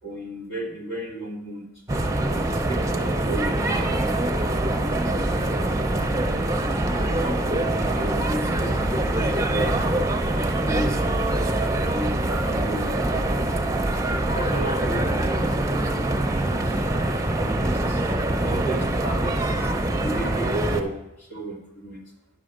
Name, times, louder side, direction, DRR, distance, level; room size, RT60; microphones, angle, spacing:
voice 1, 0.0-1.7 2.3-5.0 6.9-11.0 11.5-13.5 14.1-16.9 17.4-18.1 18.4-19.5 20.0-22.1, right 1 dB, 75° left, -1 dB, 2.2 m, -34 dB
sound 1, 1.9-20.8, right 1 dB, 15° right, 0.6 m, -24 dB
10.0 x 4.9 x 6.4 m, 0.93 s
head